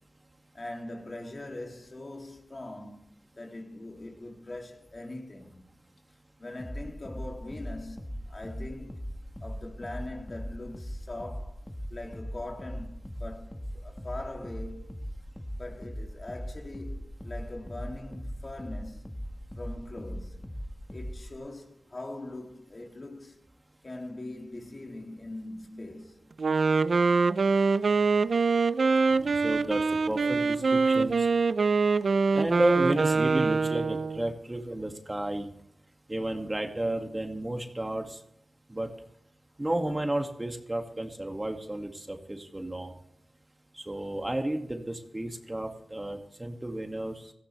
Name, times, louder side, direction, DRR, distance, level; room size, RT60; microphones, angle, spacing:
voice 1, 0.5-3.0 3.3-5.7 6.4-9.1 9.4-11.6 11.9-15.1 15.6-19.1 19.6-20.5 20.9-23.4 23.8-26.2, left 2 dB, 50° left, 2.8 m, -41 dB
sound 1, 6.6-21.4, equal, 10° left, 1.6 m, -40 dB
Wind instrument woodwind instrument, 26.4-34.3, right 4 dB, 75° right, 0.4 m, -24 dB
voice 2, 29.1-31.2 32.3-35.5 36.1-38.2 38.7-38.9 39.6-42.9 43.9-47.1, right 1 dB, 25° right, 2.1 m, -32 dB
17.5 x 14.5 x 3.4 m
cardioid pair, 45°, 0 cm